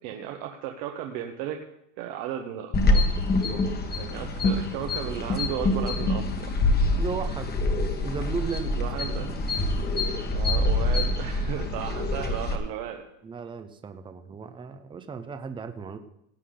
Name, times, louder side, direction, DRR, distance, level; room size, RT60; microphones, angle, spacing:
voice 1, 0.0-1.6 2.0-3.2 4.0-6.5 8.8-9.4 10.3-13.0, right 10 dB, 60° right, 3 dB, 1.3 m, -35 dB
sound 1, 2.7-12.6, left 2 dB, 25° left, 1.4 m, -25 dB
voice 2, 7.0-7.5 8.0-8.7 13.2-16.0, right 5 dB, 10° right, 9 dB, 0.7 m, -35 dB
17.0 x 8.4 x 3.9 m, 0.78 s
supercardioid pair, 135°, 42 cm